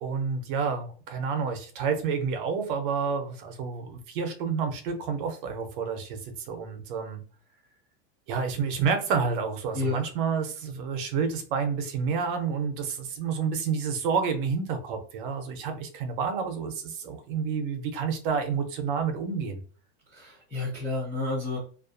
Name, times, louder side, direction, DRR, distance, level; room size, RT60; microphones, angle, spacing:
voice 1, 0.0-7.2 8.3-19.6, right 6 dB, 50° right, 6 dB, 0.6 m, -29 dB
voice 2, 9.7-10.1 20.1-21.6, left 2 dB, 5° left, -10 dB, 0.3 m, -30 dB
2.4 x 2.4 x 2.3 m, 0.41 s
supercardioid pair, 165°, 33 cm